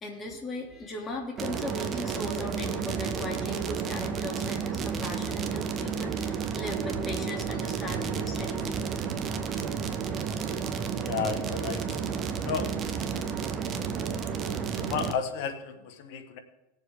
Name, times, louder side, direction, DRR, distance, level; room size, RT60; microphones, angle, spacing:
voice 1, 0.0-8.8, left 1 dB, 25° left, 0 dB, 2.9 m, -38 dB
sound 1, 1.4-15.1, right 6 dB, 35° right, 1.1 m, -31 dB
voice 2, 11.0-12.0 12.3-13.1 14.7-16.4, left 6 dB, 65° left, 8 dB, 1.5 m, -33 dB
19.0 x 7.3 x 3.8 m, 0.96 s
hypercardioid pair, 105°, 0 cm